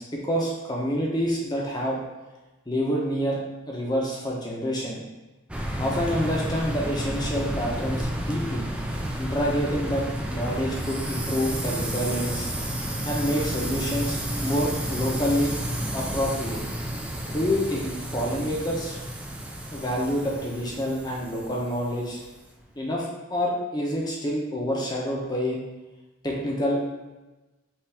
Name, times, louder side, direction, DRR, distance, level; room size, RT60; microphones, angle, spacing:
voice 1, 0.0-2.0 2.7-3.4 3.7-5.0 5.8-8.6 9.2-12.5 13.1-15.6 15.9-16.6 17.3-19.0 19.7-22.2 22.7-25.6 26.2-26.8, equal, 20° left, -3 dB, 0.7 m, -27 dB
sound 1, 5.5-22.3, right 1 dB, 5° right, 0.3 m, -31 dB
5.6 x 2.6 x 3.5 m, 1.1 s
head